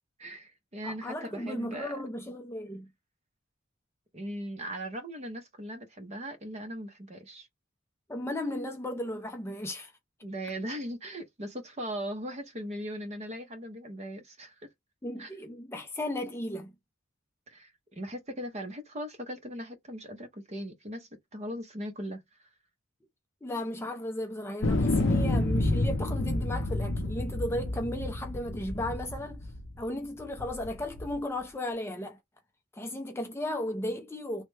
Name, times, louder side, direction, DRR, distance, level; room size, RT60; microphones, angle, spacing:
voice 1, 0.2-2.0 4.1-7.5 10.2-14.7 15.2-15.3 17.5-22.5, equal, 30° right, 0.7 m, -39 dB
voice 2, 0.8-2.9 8.1-9.9 15.0-16.7 23.4-29.5 29.8-32.2 32.7-34.4, left 1 dB, 10° left, 0.4 m, -35 dB
sound 1, 24.6-29.8 30.4-31.2, left 2 dB, 60° left, 0.6 m, -29 dB
3.2 x 2.1 x 3.2 m
head